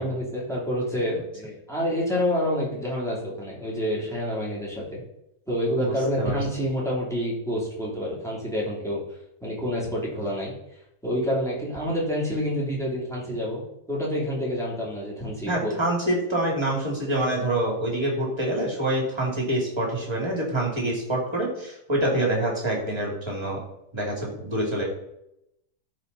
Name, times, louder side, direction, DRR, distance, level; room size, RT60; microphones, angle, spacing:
voice 1, 0.0-5.0 5.5-9.0 9.4-10.5 11.0-13.6 13.9-15.8, equal, ahead, -5 dB, 2.9 m, -28 dB
voice 2, 5.8-6.4 15.5-23.6 23.9-24.9, right 1 dB, 15° right, -1 dB, 2.6 m, -26 dB
13.0 x 4.9 x 4.1 m, 0.82 s
omnidirectional pair, 1.7 m